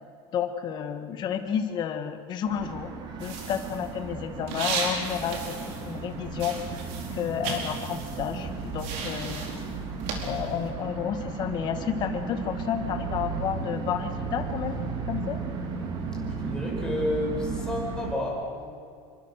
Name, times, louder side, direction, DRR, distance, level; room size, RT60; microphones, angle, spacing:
voice 1, 0.3-2.9 3.2-5.6 5.8-6.6 7.1-9.5 10.2-14.8 15.1-15.4, left 8 dB, 35° left, 7 dB, 1.8 m, -31 dB
sound 1, 2.4-18.1, right 4 dB, 35° right, 2.8 m, -35 dB
sound 2, 3.2-6.1 6.3-10.7, right 4 dB, 60° right, 4.7 m, -36 dB
voice 2, 16.4-18.7, left 1 dB, 5° left, -3 dB, 5.8 m, -30 dB
27.5 x 24.0 x 6.6 m, 2.3 s
cardioid pair, 165°, 13 cm